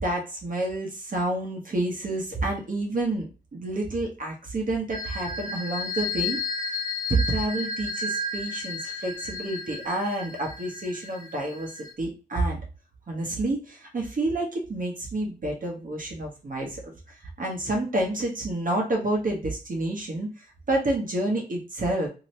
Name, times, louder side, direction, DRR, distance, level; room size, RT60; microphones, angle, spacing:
voice 1, 0.0-6.4 7.1-12.6 13.1-22.1, right 2 dB, 50° right, 0 dB, 1.0 m, -29 dB
sound 1, 4.9-11.9, left 3 dB, 90° left, 1.0 m, -33 dB
2.9 x 2.8 x 3.1 m, 0.33 s
cardioid pair, 60°, 18 cm